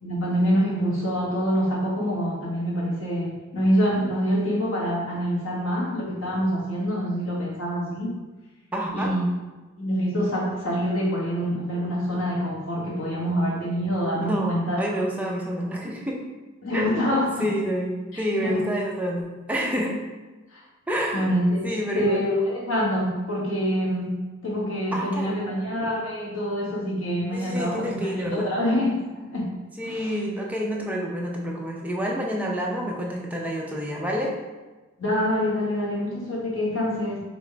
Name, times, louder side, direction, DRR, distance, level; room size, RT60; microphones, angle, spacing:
voice 1, 0.0-8.1 8.9-9.2 9.8-14.8 16.6-17.5 18.1-18.6 20.5-20.6 21.1-21.7 21.9-29.5 29.8-30.1 35.0-37.2, equal, 80° left, -4 dB, 1.4 m, -26 dB
voice 2, 8.7-9.1 14.2-16.2 16.7-19.2 19.5-20.0 20.9-21.4 21.6-22.2 24.9-25.4 27.3-28.5 29.8-34.3, equal, 5° right, -2 dB, 0.6 m, -28 dB
5.2 x 3.0 x 3.3 m, 1.2 s
head